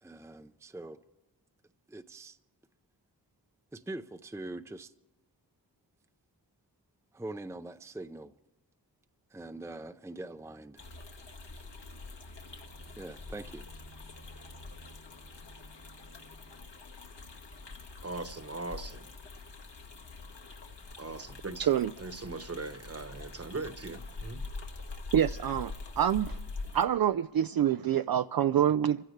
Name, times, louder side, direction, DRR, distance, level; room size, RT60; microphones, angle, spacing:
voice 1, 0.0-1.0 1.9-2.4 3.7-4.9 7.1-8.3 9.3-10.8 12.9-13.6, right 2 dB, 5° right, 0.6 m, -43 dB
sound 1, 10.8-26.9, left 3 dB, 70° left, 1.8 m, -44 dB
voice 2, 18.0-19.1 21.0-24.5, right 3 dB, 35° right, 1.2 m, -40 dB
voice 3, 25.1-26.4 26.7-29.0, right 10 dB, 55° right, 0.5 m, -26 dB
28.0 x 15.5 x 3.3 m
cardioid pair, 45°, 44 cm